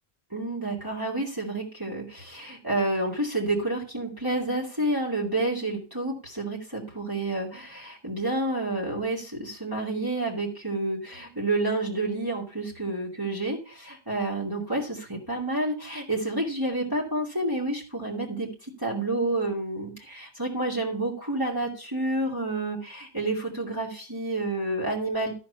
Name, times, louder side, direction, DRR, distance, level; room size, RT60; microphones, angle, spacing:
voice 1, 0.3-25.3, right 2 dB, 20° right, -3 dB, 2.8 m, -29 dB
13.5 x 4.7 x 7.0 m, 0.36 s
omnidirectional pair, 1.1 m